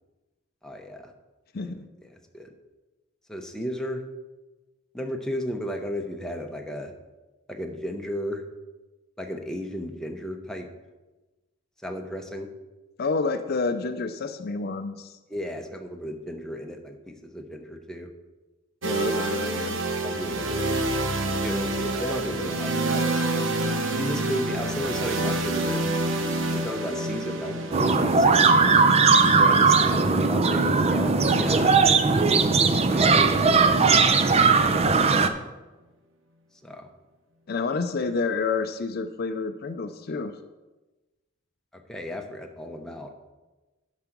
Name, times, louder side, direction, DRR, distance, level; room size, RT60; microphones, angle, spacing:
voice 1, 0.6-1.1 1.6-1.8 2.1-2.5 3.3-4.0 4.9-6.9 7.5-8.4 9.2-10.7 11.8-12.5 15.3-18.1 20.0-20.8 21.4-23.2 23.9-25.9 26.5-28.7 29.3-32.3 32.9-34.3 35.4-35.5 36.6-36.9 41.7-43.1, equal, 5° left, 2 dB, 0.8 m, -34 dB
voice 2, 1.5-1.8 13.0-15.2 18.8-19.8 37.5-40.4, left 4 dB, 50° left, 9 dB, 0.5 m, -29 dB
sound 1, 18.8-32.7, right 2 dB, 70° right, 1.0 m, -28 dB
sound 2, 27.7-35.3, right 4 dB, 30° right, 0.5 m, -19 dB
10.5 x 4.9 x 5.9 m, 1.1 s
head